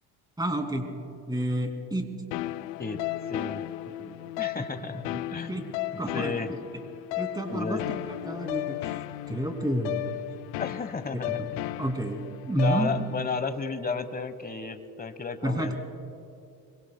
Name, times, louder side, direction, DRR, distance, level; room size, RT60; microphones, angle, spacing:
voice 1, 0.4-0.8 1.3-2.1 4.0-4.2 5.5-5.7 6.0-6.4 7.2-7.8 8.3-9.0 9.3-10.1 11.8-12.2 12.5-12.9 15.4-15.8, right 1 dB, 10° right, 4 dB, 2.6 m, -29 dB
sound 1, 2.3-13.3, left 15 dB, 85° left, 0.6 m, -35 dB
voice 2, 3.3-3.6 4.4-6.5 7.5-7.8 10.6-11.7 12.5-15.8, left 4 dB, 20° left, 10 dB, 1.2 m, -33 dB
25.0 x 23.0 x 2.2 m, 2.5 s
supercardioid pair, 80°, 48 cm